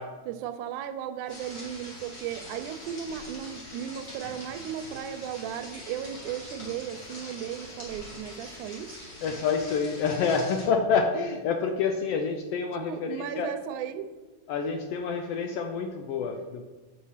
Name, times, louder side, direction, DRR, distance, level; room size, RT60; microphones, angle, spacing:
voice 1, 0.3-9.1 12.7-14.1, right 9 dB, 85° right, 2.0 m, -36 dB
sound 1, 1.3-10.7, left 1 dB, 35° left, 2.8 m, -43 dB
voice 2, 9.2-13.5 14.5-16.6, left 5 dB, 85° left, 1.3 m, -28 dB
8.1 x 5.4 x 5.6 m
omnidirectional pair, 3.5 m